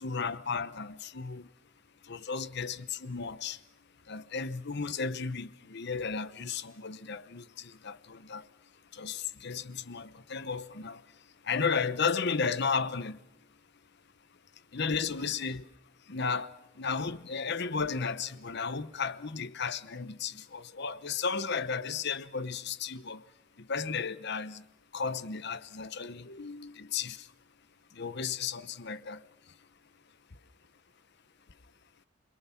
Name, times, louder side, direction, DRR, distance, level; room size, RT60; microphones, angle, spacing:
voice 1, 0.0-1.5 2.0-3.6 4.0-13.2 14.3-15.7 16.0-24.7 24.9-27.3 27.9-29.7 30.3-30.4 31.5-31.6, left 5 dB, 60° left, 1.0 m, -34 dB
29.0 x 22.0 x 5.8 m
head